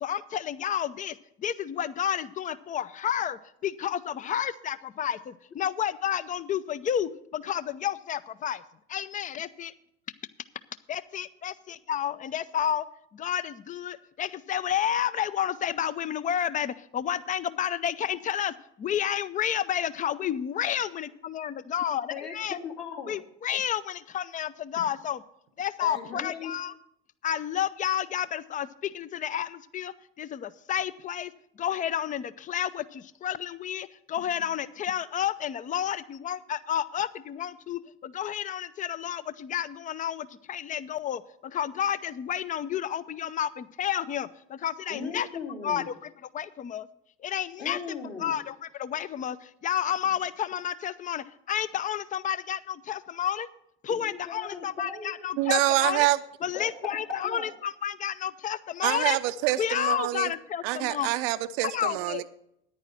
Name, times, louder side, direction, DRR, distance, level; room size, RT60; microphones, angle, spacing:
voice 1, 0.0-8.6 8.9-9.7 10.9-12.8 13.1-22.6 23.1-25.2 25.6-26.7 27.2-31.3 31.6-45.3 45.6-46.9 47.2-47.8 48.2-53.5 53.8-56.1 56.4-59.2 59.6-61.1 61.6-62.2, left 9 dB, 25° left, 0.5 m, -31 dB
voice 2, 22.1-23.1 25.8-26.5 44.9-45.8 47.6-48.3 54.0-55.1 56.5-57.5, left 5 dB, 50° left, 2.7 m, -38 dB
voice 3, 55.4-56.2 58.8-60.3 60.6-62.2, right 16 dB, 55° right, 0.6 m, -26 dB
9.7 x 9.6 x 5.8 m
figure-of-eight pair, 65°, 33 cm